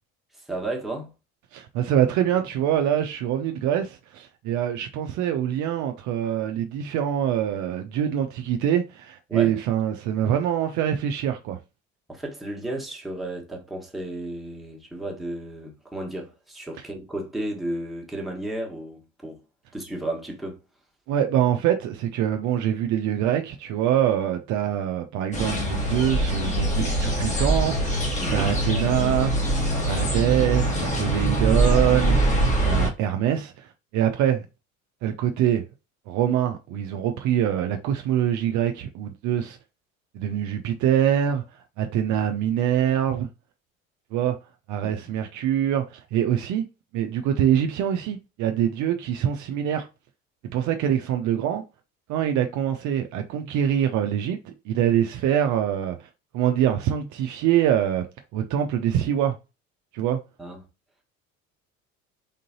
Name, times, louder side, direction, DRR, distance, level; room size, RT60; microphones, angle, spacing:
voice 1, 0.3-1.1 9.3-9.6 12.1-19.4 19.7-20.6 28.2-28.5 44.8-44.9 60.4-60.6, right 1 dB, ahead, 1.3 m, -33 dB
voice 2, 1.5-11.6 21.1-28.0 28.3-29.3 29.8-32.2 32.6-34.4 35.0-35.6 36.1-39.6 40.1-43.3 44.1-44.4 44.7-46.6 46.9-49.9 50.5-51.6 52.1-56.1 56.3-58.1 58.3-59.4 59.9-60.2, right 10 dB, 50° right, 0.6 m, -24 dB
sound 1, 25.3-32.9, right 1 dB, 20° left, 1.3 m, -23 dB
3.7 x 3.6 x 2.8 m
hypercardioid pair, 65°, 40 cm